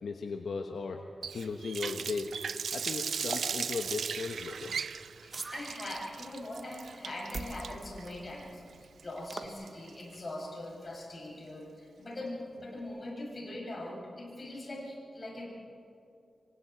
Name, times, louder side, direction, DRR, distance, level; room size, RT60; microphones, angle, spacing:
voice 1, 0.0-2.3 2.7-4.7, left 4 dB, 80° left, 4 dB, 1.1 m, -37 dB
Water tap faucet, 1.2-10.1, right 6 dB, 90° right, 0.5 m, -38 dB
sound 1, 3.3-3.5 5.3-5.7 7.3-7.5 9.3-9.5, right 3 dB, 40° right, 1.5 m, -38 dB
voice 2, 5.2-15.5, left 1 dB, 40° left, -3 dB, 7.2 m, -42 dB
27.0 x 24.5 x 4.7 m, 2.7 s
wide cardioid pair, 120°, 0 cm